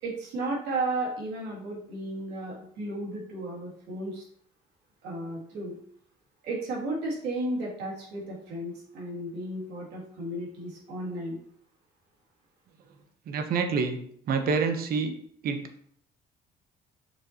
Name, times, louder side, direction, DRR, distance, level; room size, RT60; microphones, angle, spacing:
voice 1, 0.0-4.2 5.0-5.8 6.4-11.4, right 2 dB, 85° right, -4 dB, 2.7 m, -34 dB
voice 2, 13.3-14.0 14.3-15.1 15.4-15.6, right 5 dB, 60° right, 6 dB, 1.1 m, -27 dB
6.3 x 6.3 x 3.0 m, 0.64 s
cardioid pair, 110°, 17 cm